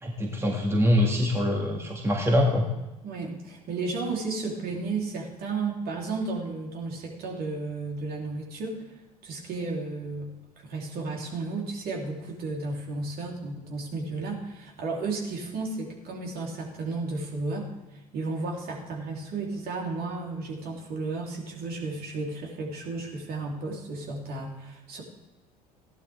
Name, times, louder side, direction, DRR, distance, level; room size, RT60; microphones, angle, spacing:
voice 1, 0.0-2.6, left 1 dB, 15° right, 0 dB, 1.9 m, -24 dB
voice 2, 3.0-8.9 9.2-25.0, right 3 dB, 50° right, -1 dB, 3.4 m, -33 dB
15.5 x 11.5 x 3.5 m, 1.1 s
hypercardioid pair, 70°, 20 cm